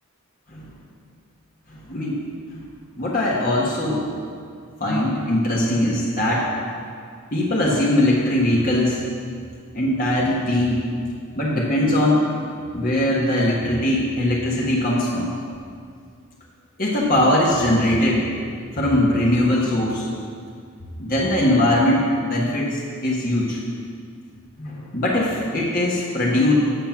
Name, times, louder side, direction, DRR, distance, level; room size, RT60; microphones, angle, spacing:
voice 1, 1.7-2.2 2.5-2.6 3.0-4.0 4.8-6.5 7.3-9.0 9.7-10.9 11.3-12.2 12.7-15.3 16.8-18.2 18.7-20.1 21.0-23.6 24.6-26.5, left 1 dB, 40° left, -5 dB, 1.5 m, -21 dB
9.8 x 7.5 x 5.9 m, 2.2 s
head